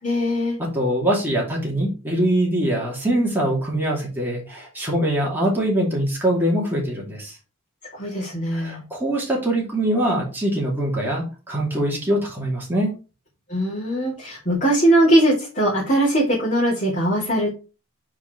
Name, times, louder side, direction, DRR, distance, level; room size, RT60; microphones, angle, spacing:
voice 1, 0.0-0.6 7.9-8.8 13.5-17.5, right 1 dB, 40° left, -7 dB, 2.6 m, -20 dB
voice 2, 0.7-7.3 8.5-12.9, right 1 dB, 10° right, -3 dB, 2.6 m, -23 dB
4.9 x 4.6 x 4.5 m, 0.33 s
head